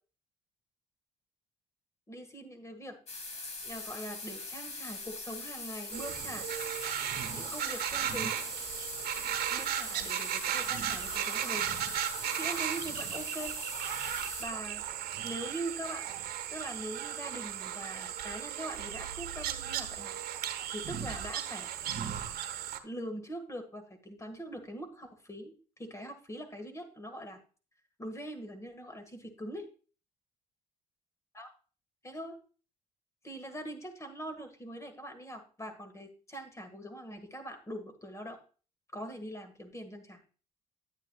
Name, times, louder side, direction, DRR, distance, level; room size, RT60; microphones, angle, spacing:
voice 1, 2.1-3.0 3.6-6.5 7.3-8.4 9.5-11.7 12.1-13.5 14.4-14.8 15.2-16.1 16.5-20.2 20.7-21.7 22.8-27.4 28.0-29.6 31.3-31.5 32.0-32.4 33.2-38.4 38.9-40.2, right 1 dB, 15° left, 8 dB, 1.8 m, -42 dB
sound 1, 3.1-14.5, left 3 dB, 40° left, 2.6 m, -42 dB
sound 2, 5.9-22.8, right 10 dB, 70° right, 1.1 m, -36 dB
10.0 x 9.1 x 2.3 m, 0.37 s
cardioid pair, 110°, 17 cm